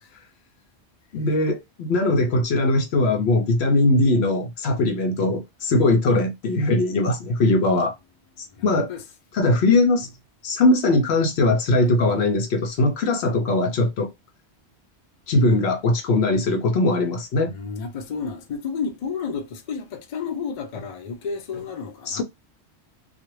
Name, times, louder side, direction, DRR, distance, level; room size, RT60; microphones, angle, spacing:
voice 1, 1.1-7.9 8.6-8.9 9.3-10.1 10.4-14.1 15.3-17.5 22.1-22.2, left 2 dB, 70° left, 0.8 m, -20 dB
voice 2, 8.5-9.0 17.5-22.2, left 5 dB, 50° left, 0.5 m, -31 dB
2.4 x 2.0 x 3.0 m
omnidirectional pair, 1.2 m